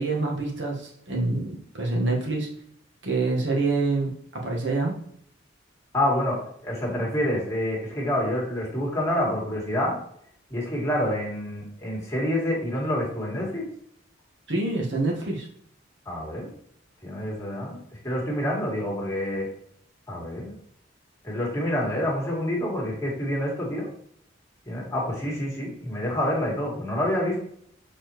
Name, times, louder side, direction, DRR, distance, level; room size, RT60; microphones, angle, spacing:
voice 1, 0.0-2.5 3.0-4.9 14.5-15.5, right 3 dB, 70° right, -1 dB, 1.6 m, -26 dB
voice 2, 5.9-10.0 10.5-13.7 16.1-16.5 17.0-17.8 18.0-19.5 20.1-20.5 21.2-23.9 24.7-27.4, left 1 dB, 15° left, -4 dB, 1.9 m, -27 dB
7.0 x 4.2 x 3.2 m, 0.67 s
head